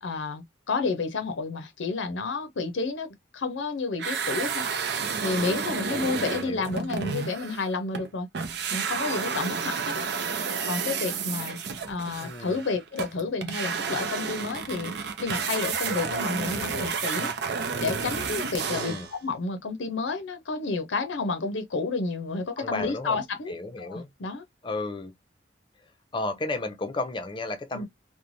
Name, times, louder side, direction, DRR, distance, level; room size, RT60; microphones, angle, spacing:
voice 1, 0.0-3.1 3.3-4.7 5.2-8.3 8.7-10.0 10.6-11.6 11.9-17.3 17.8-23.5 23.8-24.4 27.7-27.9, left 3 dB, 80° left, 0.6 m, -30 dB
sound 1, 4.0-8.1 8.3-19.1, right 5 dB, 60° right, 0.5 m, -31 dB
voice 2, 5.9-6.7 12.2-12.6 18.7-19.1 22.6-23.2 23.5-24.1 24.6-25.1 26.1-27.9, left 2 dB, 25° left, 0.5 m, -33 dB
3.1 x 2.1 x 2.5 m
head